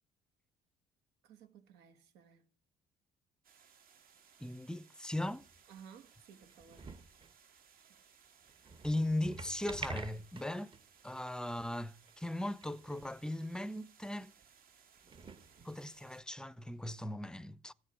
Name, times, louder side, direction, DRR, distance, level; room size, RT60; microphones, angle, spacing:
voice 1, 1.2-2.5 5.7-6.9, right 7 dB, 85° right, 2.2 m, -57 dB
sound 1, 3.4-16.2, right 7 dB, 60° right, 2.7 m, -64 dB
voice 2, 4.4-5.5 8.8-10.7 11.0-14.3 15.6-17.7, left 1 dB, 5° left, 0.6 m, -38 dB
sound 2, 5.3-5.8 6.4-7.3 8.5-10.9 11.2-11.3 11.7-11.8 12.0-12.2 12.5-13.2 13.4-13.6 14.4-14.5 15.0-16.1 17.0-17.1, right 3 dB, 30° right, 1.2 m, -48 dB
14.5 x 7.2 x 10.0 m
cardioid pair, 110°, 17 cm